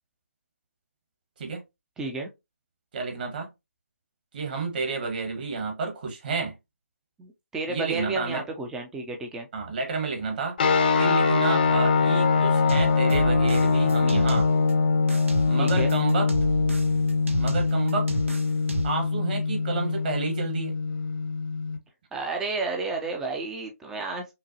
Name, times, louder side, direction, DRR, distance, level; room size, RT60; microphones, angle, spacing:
voice 1, 2.0-2.3 7.2-9.5 15.6-15.9 22.1-24.3, right 3 dB, 5° right, 0.5 m, -31 dB
voice 2, 2.9-3.5 4.3-6.6 7.7-8.4 9.5-10.6 11.0-14.5 15.4-16.3 17.3-18.2 18.8-20.8, right 4 dB, 40° right, 1.3 m, -30 dB
sound 1, 10.6-21.8, left 4 dB, 40° left, 0.7 m, -23 dB
sound 2, 12.7-14.7 15.1-19.1, right 3 dB, 60° right, 1.0 m, -32 dB
5.6 x 2.2 x 2.7 m
figure-of-eight pair, 150°, 8 cm